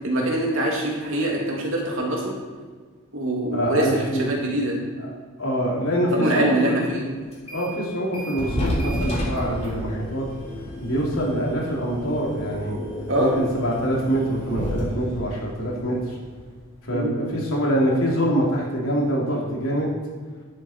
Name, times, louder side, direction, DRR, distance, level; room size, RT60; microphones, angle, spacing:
voice 1, 0.0-2.3 3.1-4.8 6.1-7.1 13.1-13.3 16.9-17.1, right 1 dB, 70° right, -2 dB, 2.6 m, -24 dB
voice 2, 3.5-4.3 5.0-5.1 5.4-6.8 7.5-10.2 10.8-12.8 13.2-16.0 16.8-19.9, equal, 80° left, -4 dB, 3.2 m, -24 dB
sound 1, 7.3-7.8 8.1-16.6, equal, 30° left, 3.1 m, -32 dB
11.0 x 8.4 x 4.5 m, 1.5 s
head